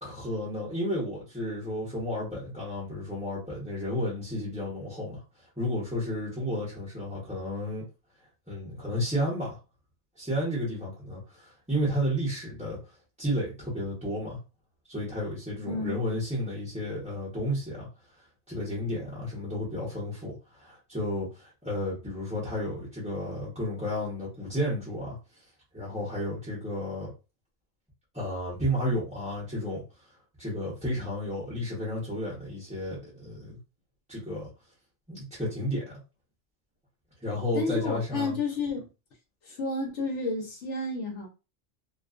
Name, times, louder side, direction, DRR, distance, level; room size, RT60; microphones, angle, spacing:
voice 1, 0.0-7.9 8.5-9.6 10.2-14.4 14.9-17.9 18.2-25.5 25.7-27.1 28.1-30.1 30.4-33.6 34.1-34.5 35.1-35.9 37.2-38.4, equal, 5° right, 0.7 m, -32 dB
voice 2, 15.7-16.0 37.5-38.9 39.4-41.3, left 3 dB, 65° left, 0.9 m, -31 dB
2.4 x 2.3 x 2.4 m
omnidirectional pair, 1.3 m